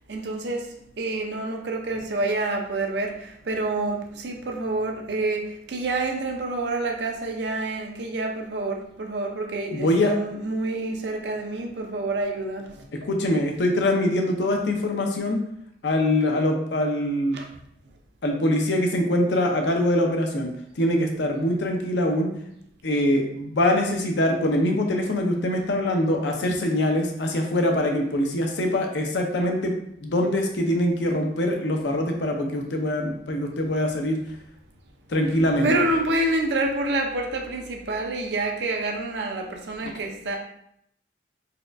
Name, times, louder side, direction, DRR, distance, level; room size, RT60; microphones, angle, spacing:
voice 1, 0.1-0.7 1.0-12.9 17.3-17.5 35.6-40.4, right 2 dB, 70° right, 2 dB, 0.6 m, -28 dB
voice 2, 9.7-10.1 12.9-15.4 15.8-17.4 18.2-20.5 20.8-22.3 22.8-34.2 35.1-35.7, left 1 dB, 75° left, 2 dB, 0.6 m, -23 dB
4.1 x 2.3 x 2.5 m, 0.73 s
head